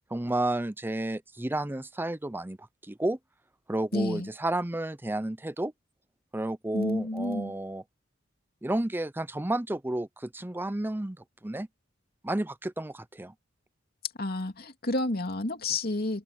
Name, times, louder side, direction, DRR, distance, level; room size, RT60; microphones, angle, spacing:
voice 1, 0.1-3.2 3.7-5.7 6.3-7.8 8.6-11.7 12.2-13.3, right 1 dB, 10° right, 0.6 m, -31 dB
voice 2, 3.9-4.3 6.7-7.5 14.2-16.2, left 2 dB, 50° left, 2.6 m, -30 dB
open air
head